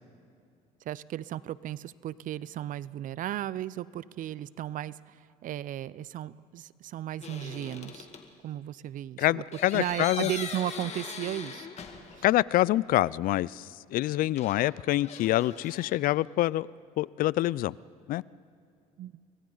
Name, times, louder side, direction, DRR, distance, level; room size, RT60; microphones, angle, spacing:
voice 1, 0.9-5.2 5.4-8.1 8.4-9.4 9.7-11.7 12.1-12.2 19.0-19.1, right 12 dB, 55° right, 0.6 m, -35 dB
sound 1, 7.2-8.3 9.5-12.4 12.6-12.7 14.4-16.0, left 5 dB, 45° left, 2.3 m, -41 dB
voice 2, 9.2-10.3 12.2-16.7 17.0-17.7 18.1-18.2, left 15 dB, 60° left, 0.4 m, -26 dB
29.5 x 22.5 x 4.0 m
supercardioid pair, 80°, 16 cm